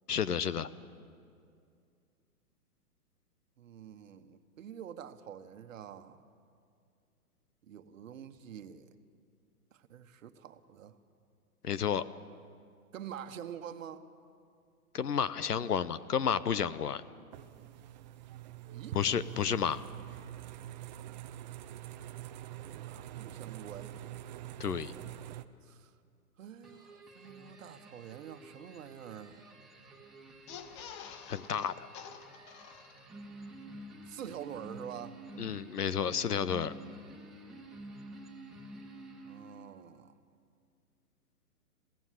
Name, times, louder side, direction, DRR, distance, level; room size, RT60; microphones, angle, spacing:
voice 1, 0.1-0.7 11.6-12.0 14.9-17.0 18.9-19.8 24.6-24.9 31.3-31.9 35.4-36.7, left 7 dB, 85° left, 16 dB, 0.9 m, -31 dB
voice 2, 3.6-6.2 7.6-8.9 9.7-11.0 12.9-14.1 18.7-19.0 22.6-24.0 25.6-25.9 26.4-29.6 34.1-35.2 39.2-40.2, right 9 dB, 60° right, 10 dB, 1.3 m, -46 dB
sound 1, 17.3-25.4, right 12 dB, 30° right, 0.6 m, -45 dB
sound 2, 26.6-39.8, right 2 dB, ahead, 2.1 m, -50 dB
sound 3, 30.3-33.3 33.7-33.8 34.0-34.1, left 8 dB, 20° left, 0.5 m, -49 dB
21.5 x 16.0 x 8.3 m, 2.3 s
hypercardioid pair, 125°, 45 cm